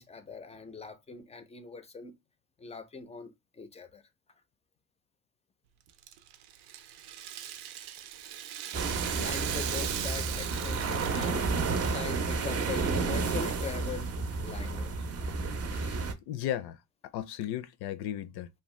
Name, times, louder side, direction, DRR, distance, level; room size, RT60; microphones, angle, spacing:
voice 1, 0.0-2.1 2.6-3.3 3.6-4.0 9.2-14.1 14.4-14.9, left 4 dB, 15° left, 0.4 m, -41 dB
Rattle (instrument), 5.9-12.1, right 11 dB, 90° right, 0.5 m, -39 dB
sound 1, 8.7-16.1, right 4 dB, 40° right, 0.5 m, -31 dB
voice 2, 15.7-16.8 17.1-18.5, left 11 dB, 80° left, 0.5 m, -36 dB
2.7 x 2.2 x 3.1 m
cardioid pair, 120°, 39 cm